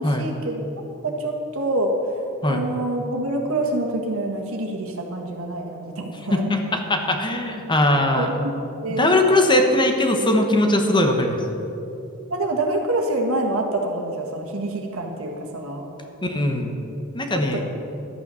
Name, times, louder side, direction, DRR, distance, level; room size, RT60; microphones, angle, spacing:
voice 1, 0.0-1.9 2.5-6.4 8.1-8.6 8.8-9.2 12.3-15.8 17.3-17.6, right 1 dB, 70° right, 2 dB, 1.8 m, -26 dB
voice 2, 6.3-8.3 9.0-11.4 16.2-16.7 17.1-17.6, left 1 dB, 20° left, 4 dB, 1.1 m, -20 dB
12.0 x 8.8 x 6.9 m, 2.9 s
head